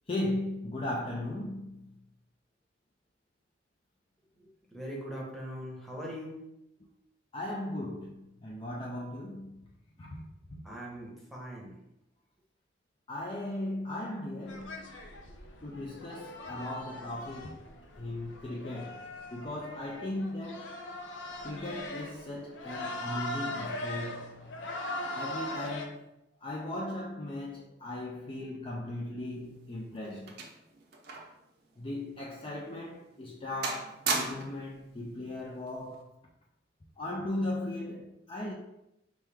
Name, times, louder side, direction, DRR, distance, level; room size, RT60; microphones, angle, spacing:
voice 1, 0.1-1.8 7.3-9.6 10.0-10.6 13.1-14.9 15.6-17.6 18.0-20.7 21.4-24.5 25.1-26.0 26.4-30.4 31.8-36.1 37.0-38.5, left 1 dB, 30° left, 0.4 m, -37 dB
voice 2, 4.3-6.4 10.6-11.8, equal, ahead, 0.9 m, -41 dB
sound 1, 14.5-25.9, left 1 dB, 85° left, 0.6 m, -40 dB
sound 2, 29.3-31.4 31.7-31.9 32.5-32.7 33.1-33.4 33.6-34.7 35.7-36.0, right 4 dB, 60° right, 0.7 m, -36 dB
4.6 x 3.0 x 3.4 m
head